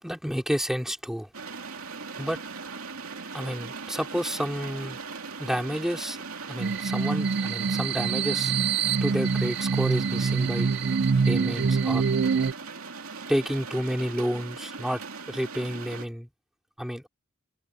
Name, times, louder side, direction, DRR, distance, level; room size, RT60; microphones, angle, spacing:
voice 1, 0.0-1.3 2.2-2.4 3.3-5.0 5.4-6.2 6.5-8.6 9.0-10.7 11.2-12.1 13.3-16.3 16.8-17.1, equal, ahead, 4.0 m, -30 dB
sound 1, 1.3-16.1, right 4 dB, 75° right, 2.6 m, -40 dB
sound 2, 6.6-12.5, right 5 dB, 50° right, 0.4 m, -25 dB
head